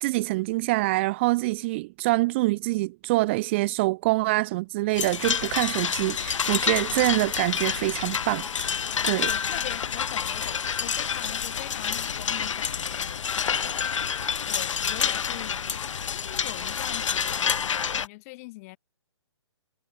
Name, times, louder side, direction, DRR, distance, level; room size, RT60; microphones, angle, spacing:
voice 1, 0.0-8.7 9.0-9.3, right 21 dB, 25° right, 0.5 m, -25 dB
sound 1, 4.9-18.1, left 7 dB, 85° left, 0.5 m, -28 dB
voice 2, 9.3-15.5 16.1-18.8, left 24 dB, 30° left, 3.3 m, -42 dB
hypercardioid pair, 150°, 16 cm